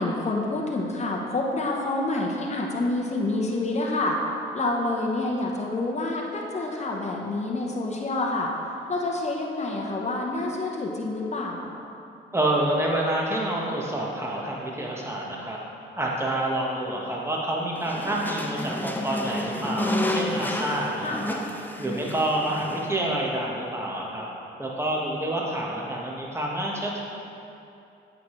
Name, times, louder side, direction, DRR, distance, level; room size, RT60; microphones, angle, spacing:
voice 1, 0.0-4.2 4.5-8.5 8.9-11.7 21.0-21.2, left 2 dB, 35° left, -1 dB, 1.0 m, -27 dB
voice 2, 12.3-15.6 16.0-21.4 21.8-24.3 24.6-27.0, right 1 dB, 15° right, -3 dB, 1.4 m, -28 dB
sound 1, 17.8-22.9, left 1 dB, 10° left, 0.6 m, -30 dB
8.0 x 5.0 x 3.2 m, 2.7 s
supercardioid pair, 55°, 20 cm